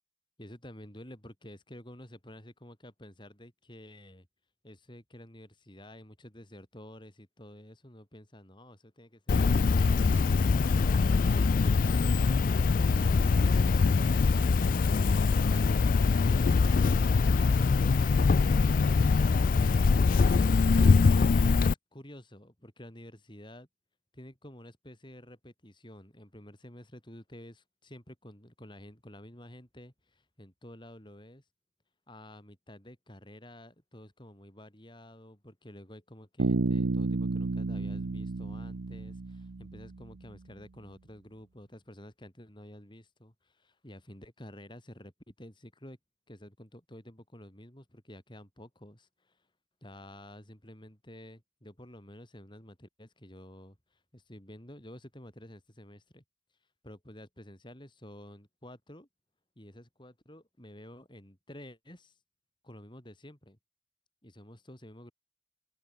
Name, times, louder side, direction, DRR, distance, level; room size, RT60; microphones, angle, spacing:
voice 1, 0.4-4.3 4.6-9.9 10.5-23.7 24.1-31.4 32.1-46.0 46.3-49.5 49.8-56.2 56.8-59.1 59.6-62.2 62.6-63.6 64.2-65.1, left 1 dB, 25° left, 5.6 m, -50 dB
Cricket, 9.3-21.7, left 4 dB, 45° left, 0.4 m, -23 dB
Bass guitar, 36.4-40.1, right 3 dB, 85° right, 0.7 m, -31 dB
open air
head